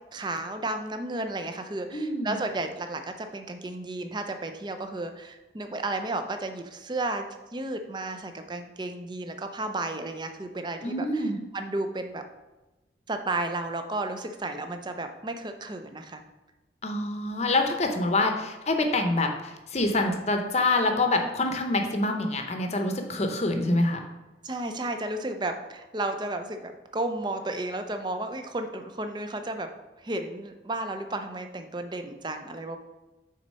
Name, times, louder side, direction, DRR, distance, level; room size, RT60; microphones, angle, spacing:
voice 1, 0.1-7.3 7.5-11.2 11.5-12.2 13.1-16.2 24.4-29.7 30.0-32.8, right 2 dB, 25° right, 7 dB, 0.5 m, -33 dB
voice 2, 1.9-2.4 10.8-11.4 16.8-24.0, left 2 dB, 35° left, 4 dB, 0.8 m, -26 dB
6.4 x 4.1 x 5.4 m, 1.1 s
head